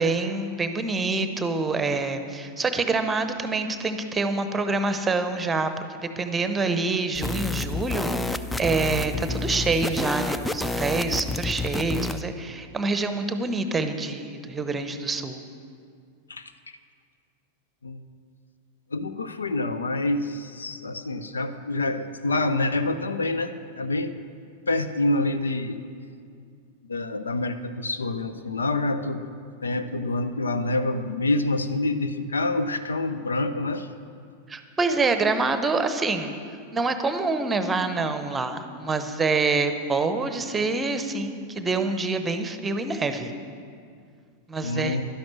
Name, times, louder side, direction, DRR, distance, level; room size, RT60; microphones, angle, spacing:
voice 1, 0.0-5.7 6.2-15.4 34.5-36.3 36.7-43.3 44.5-45.0, right 3 dB, 15° right, 9 dB, 0.9 m, -26 dB
sound 1, 7.1-12.2, left 3 dB, 5° left, 0.4 m, -29 dB
voice 2, 18.9-24.1 24.7-25.8 26.9-29.3 29.6-33.9 44.6-45.0, left 2 dB, 75° left, 11 dB, 0.6 m, -27 dB
11.5 x 10.5 x 6.4 m, 2.2 s
figure-of-eight pair, 90°, 0 cm